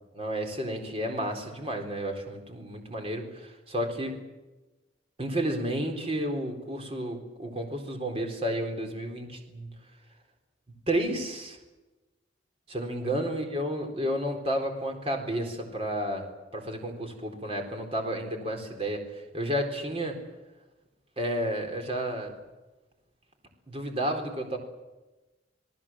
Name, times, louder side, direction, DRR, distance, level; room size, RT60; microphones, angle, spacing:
voice 1, 0.1-4.2 5.2-9.7 10.9-11.6 12.7-16.2 16.5-19.0 19.3-20.2 21.2-22.3 23.7-24.6, right 1 dB, 30° right, 4 dB, 4.0 m, -31 dB
27.5 x 18.5 x 7.5 m, 1.1 s
head